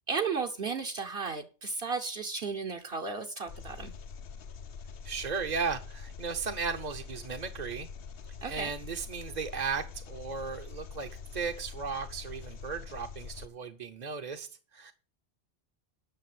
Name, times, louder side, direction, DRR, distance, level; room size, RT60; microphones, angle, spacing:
voice 1, 0.1-3.9 8.4-8.7, right 5 dB, 60° right, 1.1 m, -34 dB
Engine, 3.5-13.5, left 6 dB, 60° left, 0.9 m, -44 dB
voice 2, 5.0-7.9 8.4-14.5 14.7-14.9, right 5 dB, 45° right, 0.8 m, -36 dB
10.0 x 6.4 x 7.6 m
omnidirectional pair, 1.1 m